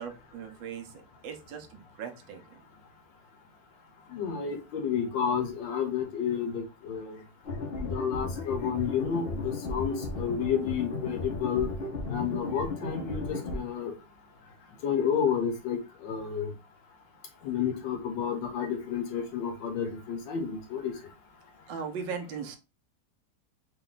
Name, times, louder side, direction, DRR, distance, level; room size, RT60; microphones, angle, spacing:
voice 1, 0.0-2.6 21.7-22.6, right 6 dB, 85° right, 6 dB, 1.5 m, -39 dB
voice 2, 4.1-7.2 7.8-11.7 12.1-14.0 14.8-16.5 17.4-21.1, left 7 dB, 80° left, 4 dB, 1.7 m, -31 dB
sound 1, 7.4-13.6, left 2 dB, 65° left, 0.6 m, -35 dB
4.0 x 2.2 x 3.8 m, 0.28 s
omnidirectional pair, 2.0 m